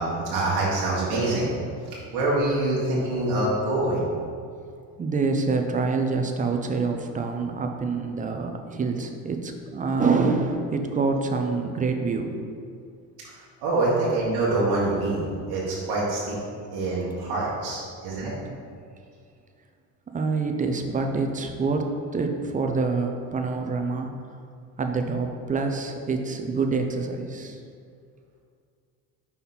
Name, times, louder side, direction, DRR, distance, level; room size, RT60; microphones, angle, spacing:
voice 1, 0.0-1.5 1.8-4.1 13.2-13.3 13.6-16.4 16.7-18.3, right 2 dB, 75° right, -6 dB, 1.4 m, -25 dB
voice 2, 5.0-12.3 20.1-24.1 24.8-27.6, right 4 dB, 20° right, 4 dB, 0.6 m, -26 dB
5.5 x 4.2 x 4.1 m, 2.3 s
supercardioid pair, 80°, 44 cm